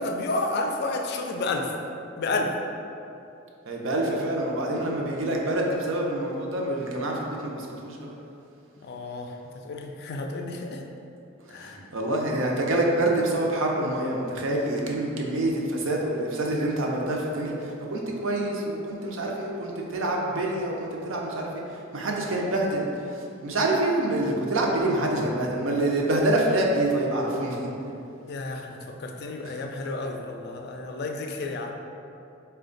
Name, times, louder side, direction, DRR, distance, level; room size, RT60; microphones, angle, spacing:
voice 1, 0.0-1.7 2.2-2.5 8.8-9.4 9.6-10.8 11.5-11.8 28.3-31.7, left 2 dB, 55° left, 3 dB, 0.3 m, -31 dB
voice 2, 3.7-8.1 11.5-27.7 29.4-29.6, right 1 dB, 75° right, -1 dB, 0.6 m, -26 dB
4.2 x 2.2 x 3.8 m, 2.7 s
head